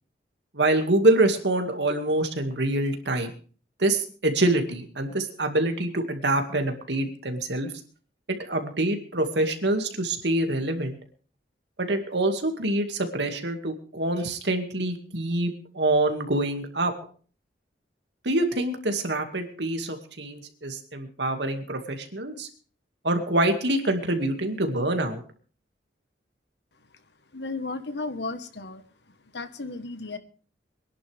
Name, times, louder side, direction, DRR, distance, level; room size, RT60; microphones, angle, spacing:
voice 1, 0.5-3.3 3.8-7.7 8.4-11.0 11.8-16.9 18.2-22.5 23.0-25.2, right 1 dB, 70° right, 5 dB, 2.2 m, -25 dB
voice 2, 27.3-28.8 29.3-30.2, left 3 dB, 65° left, 10 dB, 1.3 m, -34 dB
23.5 x 11.0 x 3.5 m, 0.41 s
head